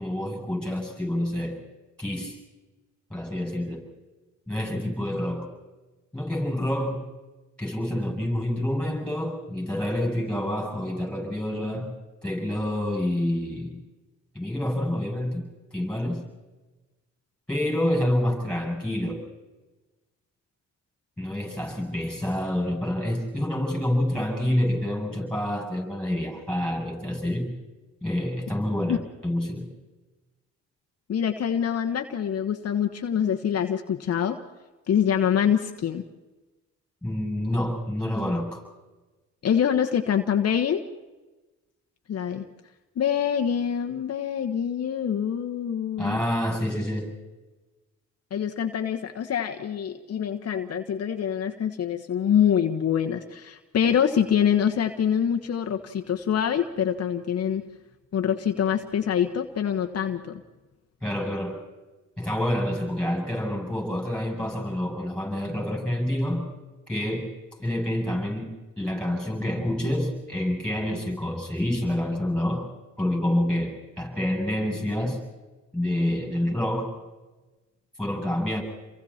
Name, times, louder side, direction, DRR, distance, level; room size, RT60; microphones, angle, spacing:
voice 1, 0.0-1.6 2.0-2.4 3.1-3.8 4.5-5.5 6.1-7.0 7.6-11.9 12.2-13.8 14.3-15.4 15.7-16.2 17.5-19.2 21.2-27.5 28.0-29.7 37.0-38.6 46.0-47.1 61.0-61.6 62.2-66.5 66.9-67.3 67.6-72.7 73.0-75.2 75.7-76.9 78.0-78.6, left 1 dB, 5° left, 1 dB, 7.9 m, -27 dB
voice 2, 31.1-34.4 34.9-36.0 39.4-40.8 42.1-42.4 42.9-46.2 48.3-57.6 58.1-60.4, left 8 dB, 55° left, 4 dB, 1.4 m, -25 dB
29.0 x 23.0 x 4.4 m, 1.2 s
cardioid pair, 90°, 30 cm